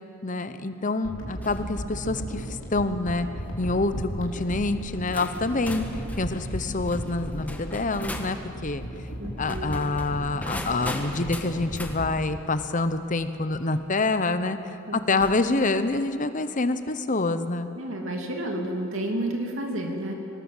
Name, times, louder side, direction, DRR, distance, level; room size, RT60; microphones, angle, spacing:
voice 1, 0.2-3.3 3.6-5.9 6.2-8.4 8.6-8.8 9.4-14.6 14.9-17.7, left 3 dB, 35° left, 11 dB, 0.9 m, -26 dB
sound 1, 1.0-13.3 13.8-13.9, equal, 60° left, 3.6 m, -36 dB
sound 2, 1.4-1.7 2.2-2.6 3.4-3.7 4.5-4.6 5.1-8.4 9.4-12.0 13.7-13.8 15.1-15.8, left 1 dB, 5° left, 1.4 m, -39 dB
voice 2, 9.2-9.7 14.9-15.0 17.8-20.1, right 1 dB, 65° right, 2 dB, 2.8 m, -30 dB
24.5 x 18.5 x 7.4 m, 2.8 s
head